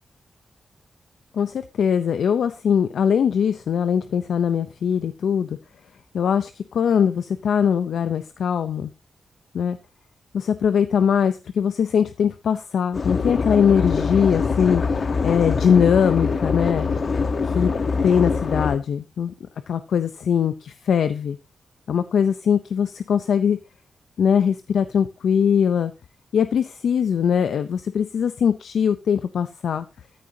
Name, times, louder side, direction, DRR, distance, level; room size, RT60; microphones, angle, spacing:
voice 1, 1.3-5.6 6.1-8.9 9.5-9.8 10.3-16.9 17.4-17.7 18.0-19.3 19.7-21.4 21.9-23.6 24.2-25.9 26.3-29.9, left 7 dB, 90° left, 11 dB, 0.6 m, -21 dB
sound 1, 12.9-18.8, left 4 dB, 55° left, 1.1 m, -23 dB
14.0 x 9.3 x 2.8 m, 0.27 s
cardioid pair, 95°, 0 cm